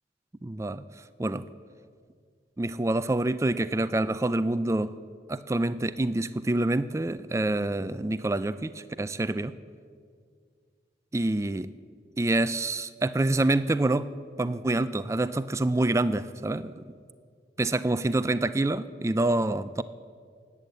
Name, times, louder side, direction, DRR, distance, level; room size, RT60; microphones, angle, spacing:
voice 1, 0.4-0.8 1.2-1.4 2.6-4.9 5.3-9.5 11.1-11.7 12.2-14.1 14.4-16.8 17.6-19.8, right 2 dB, 15° right, 14 dB, 0.3 m, -27 dB
19.0 x 8.6 x 7.9 m, 2.1 s
head